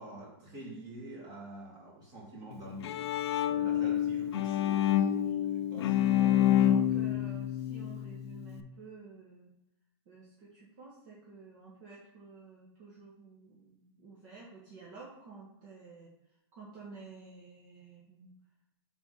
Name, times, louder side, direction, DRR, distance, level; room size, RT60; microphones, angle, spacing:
voice 1, 0.0-3.0 3.4-5.4 5.7-7.4, right 1 dB, 30° right, -4 dB, 2.5 m, -47 dB
Bowed string instrument, 2.5-8.6, left 11 dB, 75° left, 0.5 m, -28 dB
voice 2, 6.6-9.5 10.0-16.1 16.5-18.3, right 4 dB, 45° right, -4 dB, 1.4 m, -51 dB
4.5 x 4.1 x 5.7 m, 0.85 s
hypercardioid pair, 155°, 14 cm